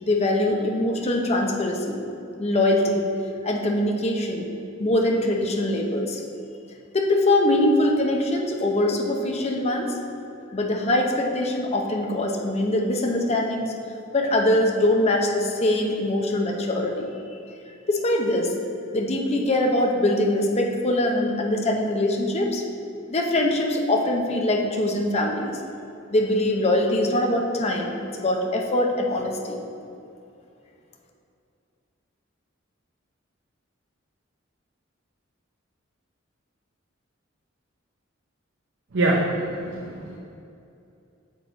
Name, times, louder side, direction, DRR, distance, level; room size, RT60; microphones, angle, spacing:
voice 1, 0.0-2.0 2.4-3.0 3.4-4.4 4.8-6.2 6.9-9.9 10.5-13.7 14.1-17.1 17.9-18.5 18.9-22.6 23.1-25.6 26.1-27.9 28.2-29.6, left 1 dB, 30° left, 1 dB, 0.6 m, -23 dB
voice 2, 38.9-40.2, right 2 dB, 60° right, -1 dB, 0.6 m, -24 dB
6.6 x 4.5 x 4.3 m, 2.6 s
head